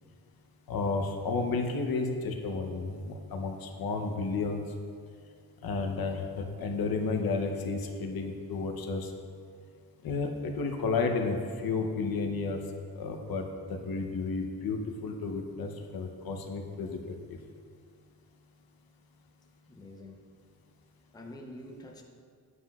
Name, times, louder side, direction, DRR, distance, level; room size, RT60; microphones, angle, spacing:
voice 1, 0.7-4.6 5.6-9.1 10.0-12.6 13.0-17.0 17.3-17.4, left 4 dB, 70° left, 4 dB, 0.8 m, -32 dB
voice 2, 19.7-20.2 21.1-22.0, left 1 dB, 10° left, 0 dB, 0.6 m, -46 dB
9.5 x 7.5 x 2.3 m, 2.1 s
wide cardioid pair, 145°, 37 cm